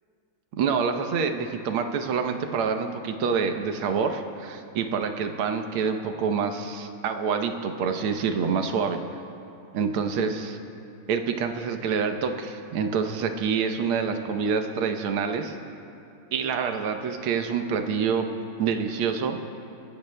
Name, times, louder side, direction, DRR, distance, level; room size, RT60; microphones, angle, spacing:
voice 1, 0.6-9.0 9.7-10.6 11.1-15.6 16.3-18.3 18.6-19.4, right 6 dB, 80° right, 6 dB, 1.7 m, -27 dB
28.5 x 15.0 x 2.2 m, 2.7 s
omnidirectional pair, 2.3 m